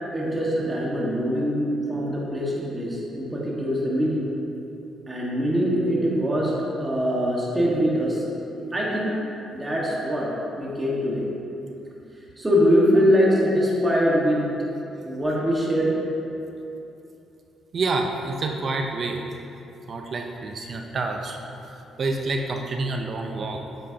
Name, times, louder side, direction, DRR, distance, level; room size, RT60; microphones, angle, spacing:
voice 1, 0.1-4.2 5.1-8.2 8.7-9.2 9.5-11.2 12.4-14.5 15.0-16.0, equal, 15° right, -5 dB, 1.6 m, -23 dB
voice 2, 17.7-19.2 19.9-21.4 22.0-23.6, right 3 dB, 50° right, 3 dB, 0.7 m, -28 dB
8.9 x 7.6 x 2.9 m, 2.9 s
cardioid pair, 90°, 0 cm